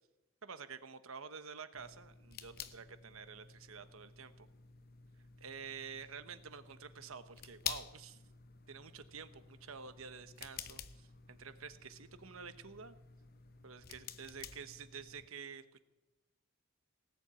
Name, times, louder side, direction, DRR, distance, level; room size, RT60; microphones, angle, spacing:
voice 1, 0.4-4.5 5.4-8.2 8.7-13.0 13.6-15.8, right 6 dB, 80° right, 11 dB, 1.1 m, -49 dB
sound 1, 1.7-15.3, left 8 dB, 45° left, 0.8 m, -50 dB
18.5 x 7.2 x 8.9 m, 1.0 s
head